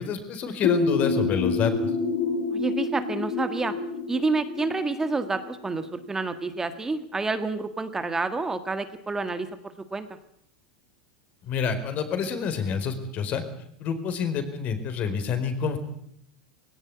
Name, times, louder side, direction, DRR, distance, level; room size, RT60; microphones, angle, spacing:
voice 1, 0.0-1.9 11.4-13.4 13.8-15.8, left 6 dB, 40° left, 10 dB, 4.4 m, -28 dB
sound 1, 0.6-6.2, left 4 dB, 60° left, 6.5 m, -28 dB
voice 2, 2.5-3.7 4.1-10.1, right 3 dB, 10° right, 9 dB, 1.6 m, -29 dB
20.5 x 17.5 x 9.6 m, 0.72 s
supercardioid pair, 130°, 4 cm